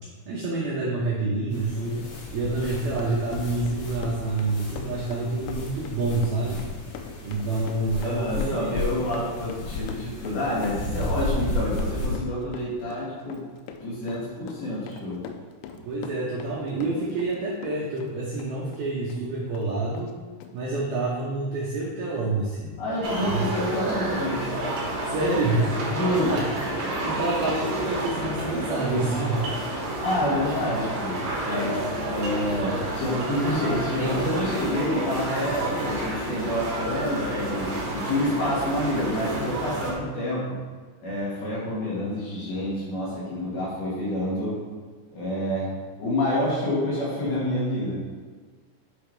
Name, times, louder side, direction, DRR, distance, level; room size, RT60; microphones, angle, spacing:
voice 1, 0.3-2.0 2.3-6.7 7.2-9.0 15.8-20.1 20.5-22.7 23.2-23.5 25.0-26.4 27.0-29.4, right 2 dB, 80° right, -5 dB, 2.2 m, -28 dB
sound 1, 1.5-12.2, left 2 dB, 75° left, 4.2 m, -33 dB
Run, 2.6-17.4 17.6-19.2 19.5-19.7 19.9-20.1 20.4-20.5, left 6 dB, 90° left, 3.4 m, -42 dB
voice 2, 8.0-13.4 13.8-15.2 22.8-24.6 25.9-26.4 30.0-31.8 32.1-40.6 41.0-44.6 45.1-45.7 46.0-48.0, left 1 dB, 55° left, -7 dB, 3.4 m, -28 dB
sound 2, 23.0-39.9, right 1 dB, 55° right, 1.8 m, -29 dB
10.5 x 5.9 x 3.4 m, 1.5 s
omnidirectional pair, 5.9 m